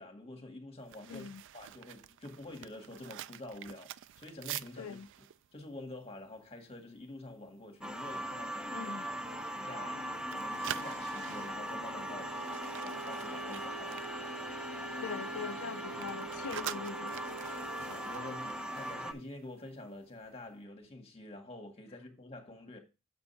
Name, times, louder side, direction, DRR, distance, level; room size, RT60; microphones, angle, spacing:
voice 1, 0.0-5.3 5.5-10.1 10.3-12.4 12.8-14.1 17.8-22.8, left 2 dB, 30° left, 2.0 m, -48 dB
sound 1, 0.8-7.0 7.3-7.5 7.9-8.2 8.7-10.0 10.2-15.0 15.2-19.8 20.0-20.3, right 12 dB, 60° right, 0.4 m, -47 dB
voice 2, 1.1-1.4 4.8-5.1 8.7-9.0 15.0-17.2, left 6 dB, 70° left, 0.4 m, -42 dB
sound 2, 7.8-19.1, equal, 5° right, 1.1 m, -40 dB
sound 3, 8.1-20.4, right 6 dB, 45° right, 2.1 m, -49 dB
7.5 x 5.2 x 5.7 m
head